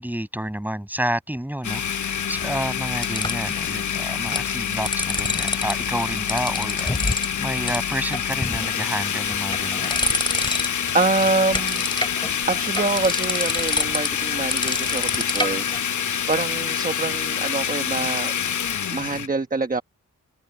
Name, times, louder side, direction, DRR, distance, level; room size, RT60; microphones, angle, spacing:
voice 1, 0.0-9.9, right 1 dB, 5° right, 7.6 m, -30 dB
Domestic sounds home sounds, 1.6-19.3, left 8 dB, 60° left, 0.8 m, -26 dB
sound 1, 2.3-3.6 4.1-4.5 4.7-5.7 6.0-7.3 7.7-7.8 8.1-8.8 9.3-10.9 11.2-15.8, left 2 dB, 15° left, 3.5 m, -27 dB
voice 2, 10.4-18.3 18.9-19.8, right 3 dB, 25° right, 1.2 m, -26 dB
wide cardioid pair, 145°, 34 cm